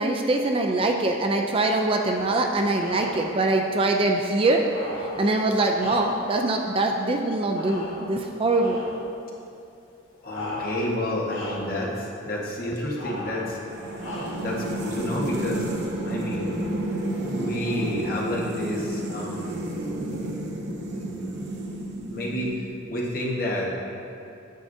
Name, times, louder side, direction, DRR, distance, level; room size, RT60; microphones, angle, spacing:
voice 1, 0.0-4.6 5.0-8.8, right 2 dB, 25° right, 3 dB, 0.4 m, -23 dB
sound 1, 1.9-2.4 2.8-3.4 4.6-6.4 7.5-8.3 8.6-9.1 10.3-11.0 11.3-11.8 13.0-13.6 14.0-14.6, left 1 dB, 90° left, 1.4 m, -37 dB
voice 2, 10.2-13.6 14.4-15.7 16.1-16.6 17.2-19.6 20.9-21.8 22.1-23.7, left 1 dB, 45° left, -3 dB, 1.2 m, -30 dB
sound 2, 13.7-23.0, right 1 dB, 55° right, 0.8 m, -31 dB
9.1 x 7.6 x 2.7 m, 2.7 s
head